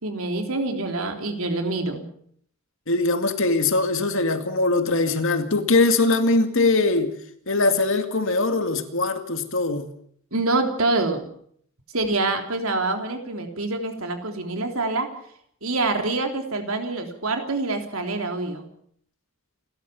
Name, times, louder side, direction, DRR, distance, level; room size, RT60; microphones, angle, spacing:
voice 1, 0.0-2.1 10.3-11.2 11.9-15.1 15.6-18.7, right 2 dB, 75° right, 3.6 m, -26 dB
voice 2, 2.9-7.1 7.5-9.9, left 3 dB, 65° left, 2.3 m, -21 dB
29.0 x 13.5 x 7.1 m
head